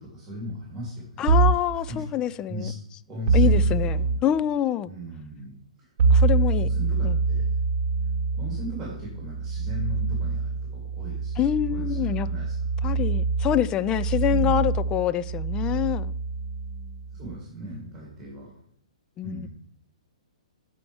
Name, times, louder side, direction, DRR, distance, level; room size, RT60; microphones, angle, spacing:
voice 1, 0.0-1.2 1.8-2.0 2.5-2.7 3.1-4.2 4.8-5.5 5.8-6.3 6.6-7.5 8.3-11.3 11.7-12.5 17.1-18.5 19.2-19.5, left 1 dB, 15° right, 3.0 m, -37 dB
voice 2, 1.2-2.7 3.3-4.9 6.1-6.7 7.0-7.2 11.4-12.3 12.8-16.1 19.2-19.5, left 11 dB, 20° left, 0.3 m, -26 dB
sound 1, 1.3-1.7 3.3-4.2 6.0-17.3, right 4 dB, 50° right, 1.0 m, -25 dB
12.5 x 4.5 x 3.4 m
figure-of-eight pair, 120°, 4 cm